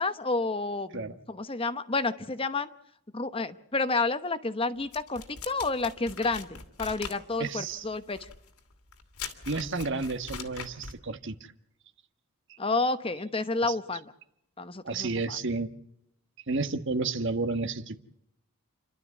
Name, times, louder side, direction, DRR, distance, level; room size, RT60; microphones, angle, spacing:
voice 1, 0.0-2.7 3.1-8.3 12.6-14.1 14.6-15.4, left 3 dB, 25° left, 12 dB, 0.9 m, -30 dB
sound 1, 4.9-11.0, left 6 dB, 90° left, 2.7 m, -42 dB
voice 2, 7.4-7.8 9.5-11.5 12.5-12.6 13.7-13.8 14.8-15.7 16.5-18.0, right 3 dB, 55° right, 10 dB, 1.3 m, -31 dB
29.0 x 12.5 x 8.2 m, 0.77 s
head